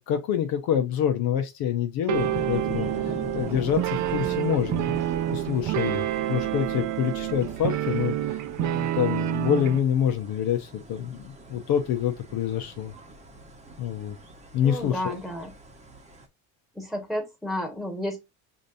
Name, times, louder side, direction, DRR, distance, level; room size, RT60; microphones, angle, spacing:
voice 1, 0.0-4.9 5.3-12.9 13.8-14.2 14.5-15.2, left 9 dB, 60° left, 0.8 m, -27 dB
sound 1, 2.1-16.3, right 1 dB, 15° right, 1.0 m, -40 dB
sound 2, 2.1-9.8, right 13 dB, 45° right, 0.5 m, -28 dB
voice 2, 14.6-15.5 16.7-18.2, left 1 dB, ahead, 1.7 m, -31 dB
5.0 x 2.7 x 2.6 m
supercardioid pair, 95°, 40 cm